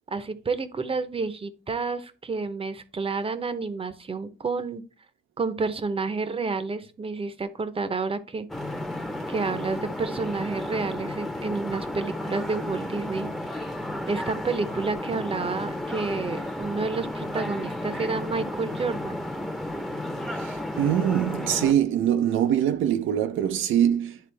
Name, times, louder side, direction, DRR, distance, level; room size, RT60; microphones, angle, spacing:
voice 1, 0.1-4.8 5.4-8.5 9.3-13.3 14.1-19.2, right 4 dB, 30° right, 0.8 m, -30 dB
sound 1, 8.5-21.7, left 1 dB, ahead, 0.8 m, -33 dB
voice 2, 20.4-24.2, right 10 dB, 80° right, 0.8 m, -23 dB
10.5 x 3.7 x 3.4 m
cardioid pair, 90°, 20 cm